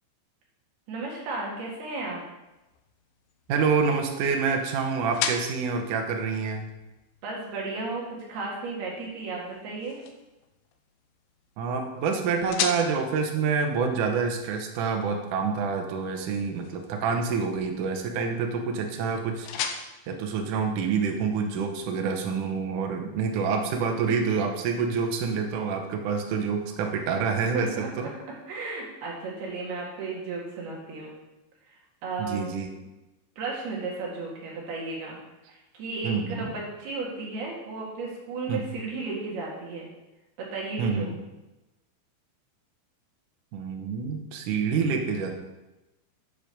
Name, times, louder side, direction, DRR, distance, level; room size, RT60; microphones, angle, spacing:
voice 1, 0.9-2.2 7.2-10.0 27.5-27.9 28.5-31.1 31.7-31.8 32.0-32.5 33.4-35.2 35.5-39.9 40.4-41.2, right 3 dB, 65° right, -3 dB, 3.8 m, -34 dB
sound 1, 2.5-21.3, left 7 dB, 90° left, 2.0 m, -40 dB
voice 2, 3.5-6.7 11.6-19.6 20.1-28.1 32.2-32.7 36.0-36.5 38.5-38.7 40.8-41.1 43.5-45.4, right 5 dB, 85° right, 3 dB, 1.8 m, -27 dB
9.5 x 5.0 x 6.7 m, 1.0 s
omnidirectional pair, 5.1 m